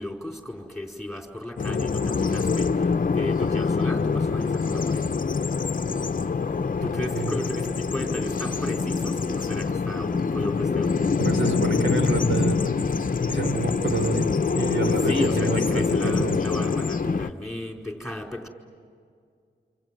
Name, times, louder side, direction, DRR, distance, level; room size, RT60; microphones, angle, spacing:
voice 1, 0.0-2.9 3.1-5.0 6.8-11.0 15.0-18.5, left 1 dB, ahead, 1 dB, 4.7 m, -34 dB
Bird vocalization bird call bird song, 1.6-17.3, left 5 dB, 45° left, 0.7 m, -25 dB
voice 2, 11.2-12.6 13.3-16.4, right 3 dB, 85° right, 6 dB, 3.9 m, -28 dB
28.0 x 26.5 x 7.7 m, 2.2 s
wide cardioid pair, 90°, 19 cm